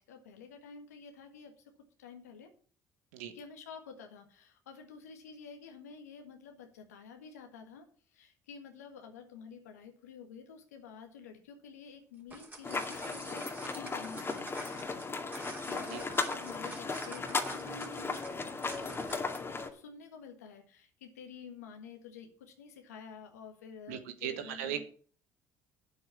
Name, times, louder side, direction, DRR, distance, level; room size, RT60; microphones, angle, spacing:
voice 1, 0.0-1.7 2.0-2.5 3.3-24.8, left 6 dB, 90° left, 4 dB, 1.7 m, -50 dB
sound 1, 12.1-19.5, right 2 dB, 20° right, 3.3 m, -48 dB
sound 2, 12.6-19.7, left 4 dB, 30° left, 2.1 m, -36 dB
voice 2, 23.9-24.8, right 10 dB, 80° right, 9 dB, 1.2 m, -38 dB
8.9 x 7.8 x 7.0 m, 0.44 s
hypercardioid pair, 60°, 8 cm